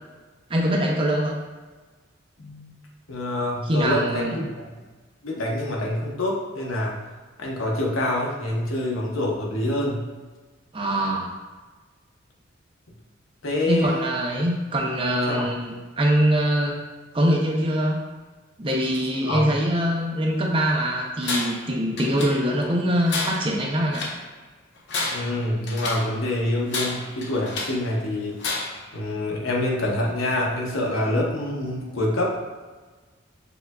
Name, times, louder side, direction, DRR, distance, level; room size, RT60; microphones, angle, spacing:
voice 1, 0.5-1.4 3.7-4.5 10.7-11.3 13.7-16.8 17.1-18.0 18.6-24.0, equal, 25° right, -1 dB, 0.5 m, -23 dB
voice 2, 2.4-2.7 3.1-4.7 5.2-7.0 7.4-10.0 13.4-14.0 15.3-15.5 19.2-19.5 25.1-28.4 28.9-32.4, left 1 dB, 85° left, -2 dB, 0.9 m, -26 dB
Tools, 21.2-21.7 22.0-22.7 23.1-24.2 24.8-26.1 26.7-27.8 28.4-28.9, left 3 dB, 60° left, 0.6 m, -30 dB
6.7 x 2.4 x 2.2 m, 1.3 s
head